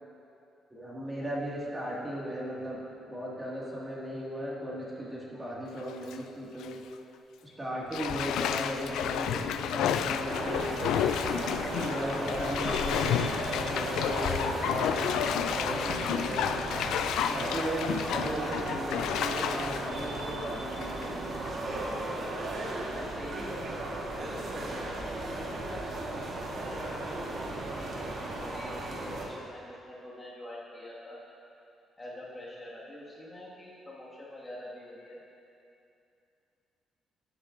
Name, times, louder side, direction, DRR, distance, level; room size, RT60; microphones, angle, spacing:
voice 1, 0.7-6.8 7.4-10.8 11.6-16.7 17.3-21.4, equal, 20° right, -5 dB, 2.0 m, -36 dB
Bathtub (filling or washing), 5.7-6.2 6.6-6.7 7.9-21.0 21.5-21.6, left 9 dB, 85° left, 0.3 m, -31 dB
sound 1, 10.3-29.3, right 2 dB, 55° right, 1.5 m, -36 dB
voice 2, 22.9-31.2 32.0-35.2, left 1 dB, 25° left, -6 dB, 1.9 m, -45 dB
13.0 x 8.7 x 2.6 m, 2.7 s
cardioid pair, 90°, 0 cm